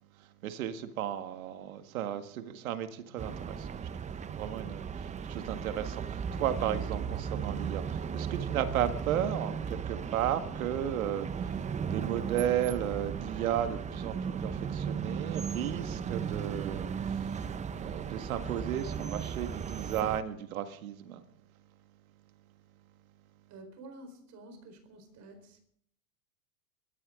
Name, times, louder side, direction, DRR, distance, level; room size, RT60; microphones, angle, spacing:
voice 1, 0.2-3.8 4.3-17.4 17.7-21.2, right 10 dB, 75° right, 1.9 m, -34 dB
sound 1, 3.2-20.2, right 7 dB, 15° right, 0.7 m, -36 dB
voice 2, 23.5-25.6, right 2 dB, 40° right, 4.5 m, -50 dB
24.5 x 14.0 x 3.8 m
hypercardioid pair, 110°, 42 cm